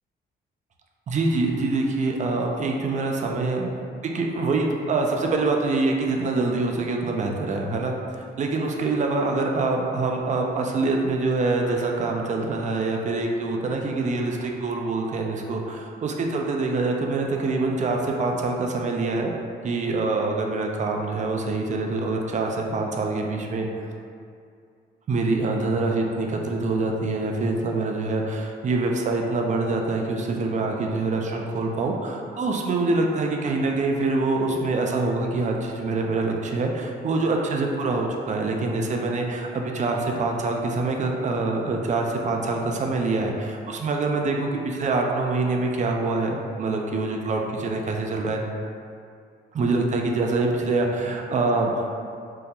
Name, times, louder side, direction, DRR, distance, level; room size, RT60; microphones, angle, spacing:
voice 1, 1.1-3.7 4.1-19.3 19.6-23.7 25.1-48.4 49.5-51.9, right 3 dB, 40° right, 1 dB, 0.4 m, -25 dB
3.7 x 2.1 x 2.8 m, 2.3 s
cardioid pair, 90°, 20 cm